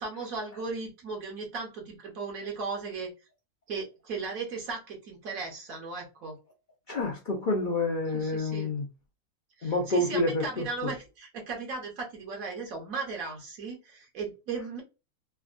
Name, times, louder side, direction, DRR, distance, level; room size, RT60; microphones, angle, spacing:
voice 1, 0.0-3.1 3.7-6.4 8.1-8.7 9.6-14.8, right 4 dB, 65° right, 1.3 m, -36 dB
voice 2, 6.9-8.9 9.6-10.9, left 2 dB, 55° left, 0.5 m, -28 dB
3.4 x 2.2 x 2.4 m
omnidirectional pair, 1.6 m